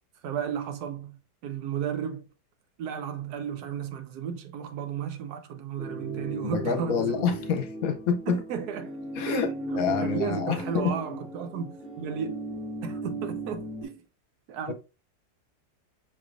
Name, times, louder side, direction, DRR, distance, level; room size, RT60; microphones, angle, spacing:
voice 1, 0.2-2.2 2.8-7.2 8.3-9.0 9.3-12.4 12.8-14.1 14.5-14.7, right 7 dB, 75° right, 1.1 m, -34 dB
sound 1, 5.8-13.8, right 1 dB, 15° left, 1.4 m, -36 dB
voice 2, 6.4-8.4 9.2-9.5 9.7-11.0 14.7-14.8, left 6 dB, 65° left, 1.1 m, -27 dB
5.8 x 3.2 x 2.5 m
omnidirectional pair, 1.8 m